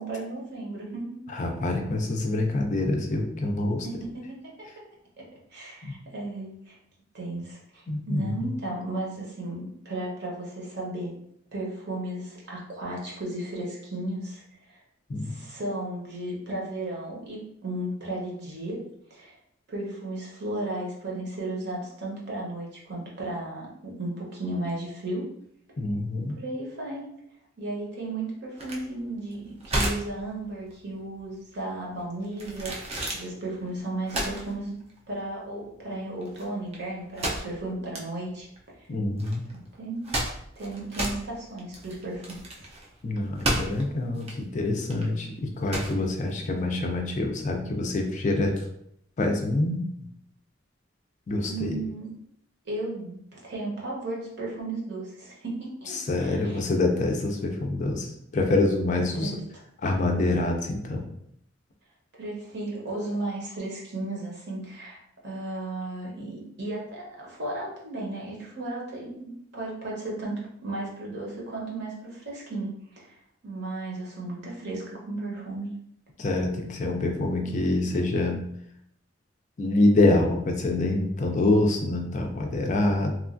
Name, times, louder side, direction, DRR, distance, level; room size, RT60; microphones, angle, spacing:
voice 1, 0.0-1.2 3.8-4.4 5.2-5.3 5.5-6.8 7.1-11.1 11.5-14.8 15.2-18.8 19.1-19.4 19.7-25.3 26.3-27.0 27.6-32.8 33.1-34.7 35.1-38.5 38.8-38.9 39.8-40.1 40.6-42.6 51.5-52.1 52.7-56.7 58.9-59.6 62.1-73.1 73.4-75.7 76.8-77.0, right 2 dB, 55° right, -3 dB, 0.8 m, -34 dB
voice 2, 1.3-3.9 5.8-5.9 7.9-8.5 15.1-15.4 25.8-26.4 38.9-39.5 43.0-48.6 49.2-49.8 51.3-51.8 56.0-59.4 59.8-61.1 76.2-78.4 79.6-83.1, left 2 dB, 35° left, 2 dB, 0.3 m, -26 dB
sound 1, 28.6-47.1, right 1 dB, 30° right, 0.4 m, -34 dB
3.0 x 2.3 x 2.5 m, 0.72 s
head